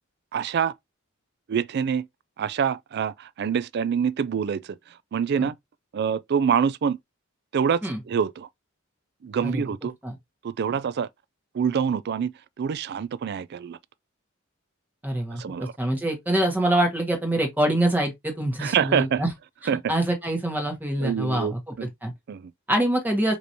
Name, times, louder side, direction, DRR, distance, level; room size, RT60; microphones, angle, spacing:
voice 1, 0.3-0.7 1.5-2.1 2.4-4.6 5.1-5.6 5.9-7.0 7.5-7.8 8.1-8.5 9.2-9.9 10.4-11.1 11.5-12.3 12.6-13.8 15.4-15.7 18.6-19.2 19.7-19.9 21.0-21.9 22.3-22.5, right 7 dB, 50° right, 0.3 m, -25 dB
voice 2, 15.0-19.3 19.9-22.1 22.7-23.3, right 1 dB, 10° right, 1.5 m, -25 dB
5.1 x 3.1 x 2.7 m
head